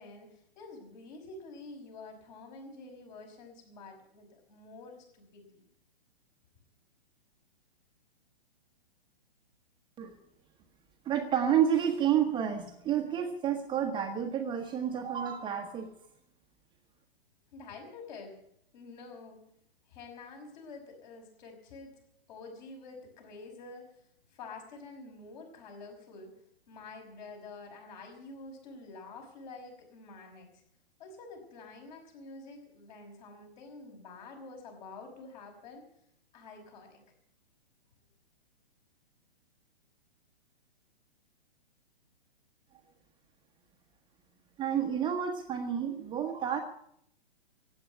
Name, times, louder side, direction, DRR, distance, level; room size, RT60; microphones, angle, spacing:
voice 1, 0.0-5.6 17.5-18.4 18.7-19.4 19.9-21.9 22.3-23.9 24.3-26.3 26.7-30.6 31.0-35.8 36.3-37.0, left 3 dB, 45° left, 2 dB, 5.8 m, -48 dB
voice 2, 11.0-15.9 44.6-46.6, right 9 dB, 15° right, 4 dB, 1.2 m, -30 dB
15.5 x 9.3 x 9.6 m, 0.69 s
figure-of-eight pair, 125°, 31 cm